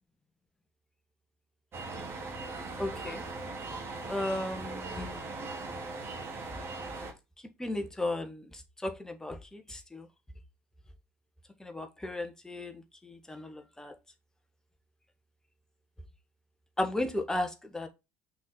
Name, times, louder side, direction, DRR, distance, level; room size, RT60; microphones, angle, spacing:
sound 1, 1.7-7.1, right 3 dB, 35° right, 2.1 m, -39 dB
voice 1, 2.8-3.2 4.1-5.2 7.6-10.1 11.6-13.9 16.8-17.9, left 1 dB, 10° left, 1.3 m, -35 dB
6.0 x 3.9 x 4.2 m
figure-of-eight pair, 65°, 7 cm